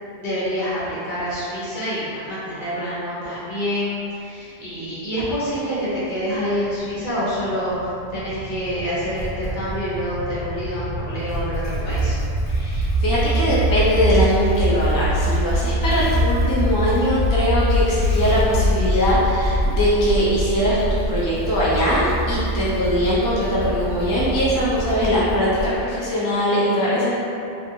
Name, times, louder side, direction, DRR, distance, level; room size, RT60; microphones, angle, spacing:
voice 1, 0.1-12.2, equal, 50° left, -11 dB, 1.0 m, -27 dB
sound 1, 5.5-21.2, equal, 85° right, 0.9 m, -25 dB
Motorcycle / Engine starting, 9.2-9.8 11.2-26.1, right 2 dB, 35° right, 0.9 m, -27 dB
voice 2, 12.5-27.2, equal, 30° left, -9 dB, 0.3 m, -21 dB
2.5 x 2.5 x 2.7 m, 2.7 s
omnidirectional pair, 1.1 m